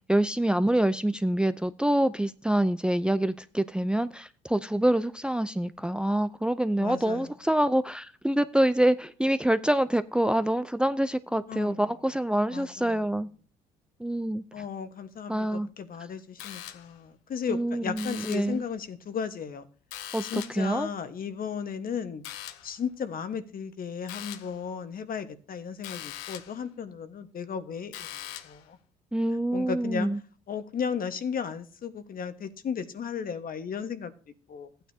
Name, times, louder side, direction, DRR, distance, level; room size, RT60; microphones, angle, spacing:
voice 1, 0.1-13.3 14.0-14.4 15.3-15.7 17.5-18.6 20.1-20.9 29.1-30.2, right 1 dB, 5° right, 0.6 m, -26 dB
voice 2, 6.8-7.3 11.5-11.8 12.5-13.0 14.5-19.7 20.2-22.2 22.6-28.8 29.5-30.1 30.5-34.1 34.5-34.7, left 6 dB, 50° left, 1.4 m, -35 dB
sound 1, 16.4-17.1 17.9-18.6 19.9-20.7 22.2-22.8 24.1-24.6 25.8-26.6 27.9-28.7, left 12 dB, 90° left, 0.8 m, -41 dB
15.0 x 9.2 x 2.8 m
supercardioid pair, 65°, 19 cm